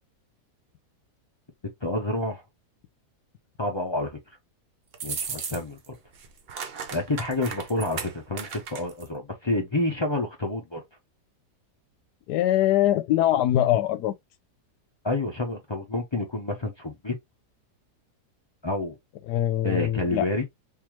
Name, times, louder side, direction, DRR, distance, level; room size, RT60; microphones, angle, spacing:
voice 1, 1.8-2.4 3.6-4.2 5.0-5.9 6.9-10.8 15.0-17.2 18.6-18.9 19.6-20.4, left 2 dB, 40° left, 0.3 m, -29 dB
sound 1, 4.9-5.9 6.1-9.1, right 6 dB, 50° right, 0.7 m, -35 dB
voice 2, 12.3-14.1 19.3-20.3, left 13 dB, 85° left, 1.2 m, -22 dB
3.7 x 2.6 x 3.0 m
omnidirectional pair, 1.7 m